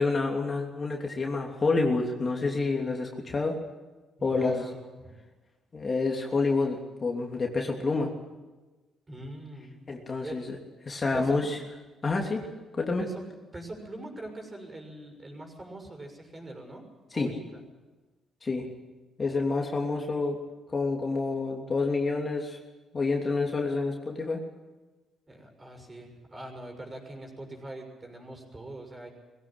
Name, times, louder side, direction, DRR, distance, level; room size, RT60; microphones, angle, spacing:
voice 1, 0.0-3.5 4.2-4.7 5.7-8.1 9.9-10.6 10.8-11.6 12.0-12.4 12.8-13.0 17.1-17.3 18.4-18.7 19.2-20.4 20.7-22.6 22.9-24.4, left 3 dB, 35° left, 1 dB, 3.1 m, -28 dB
voice 2, 4.2-5.1 9.1-9.8 10.2-10.4 11.1-11.4 12.4-12.5 13.0-13.2 13.5-16.9 17.1-17.6 25.3-29.1, right 1 dB, 25° right, 3 dB, 6.5 m, -42 dB
21.0 x 16.5 x 9.1 m, 1.2 s
cardioid pair, 90°, 0 cm